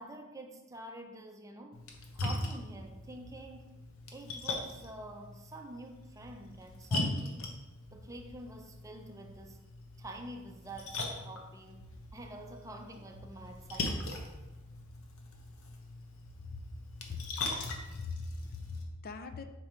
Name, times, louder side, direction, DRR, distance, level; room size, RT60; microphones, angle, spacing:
voice 1, 0.0-1.8 2.1-3.8 4.1-7.5 7.9-9.6 10.0-14.3, right 2 dB, 15° right, 4 dB, 0.6 m, -47 dB
Splash splatter, 1.7-18.8, left 2 dB, 85° left, 0.9 m, -41 dB
voice 2, 17.1-19.4, left 3 dB, 45° left, 8 dB, 0.5 m, -41 dB
5.3 x 4.5 x 4.4 m, 1.1 s
head